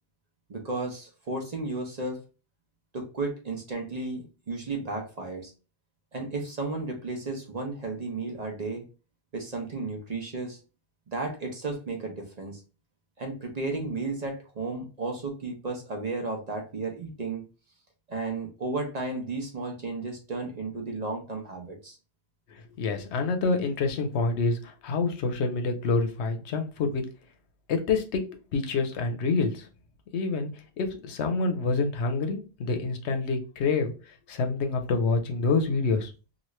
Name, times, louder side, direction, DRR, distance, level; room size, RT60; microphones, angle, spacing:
voice 1, 0.5-2.2 2.9-5.5 6.1-8.8 9.3-10.6 11.1-12.6 13.2-17.5 18.1-22.0, right 3 dB, 45° right, 2 dB, 0.7 m, -33 dB
voice 2, 22.8-27.0 27.7-28.2 28.5-29.7 30.1-30.5 30.8-33.9 34.3-36.1, left 4 dB, 85° left, 6 dB, 0.9 m, -27 dB
3.0 x 2.4 x 3.0 m, 0.32 s
omnidirectional pair, 1.1 m